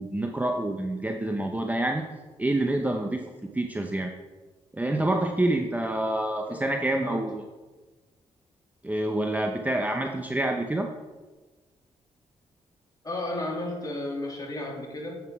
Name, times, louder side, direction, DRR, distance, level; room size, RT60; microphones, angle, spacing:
voice 1, 0.0-2.0 2.4-3.2 3.5-4.1 4.7-7.4 8.8-10.9, right 1 dB, 15° right, 3 dB, 0.7 m, -27 dB
voice 2, 13.0-15.2, left 1 dB, 30° left, -1 dB, 2.4 m, -33 dB
7.7 x 5.8 x 4.7 m, 1.3 s
cardioid pair, 70°, 12 cm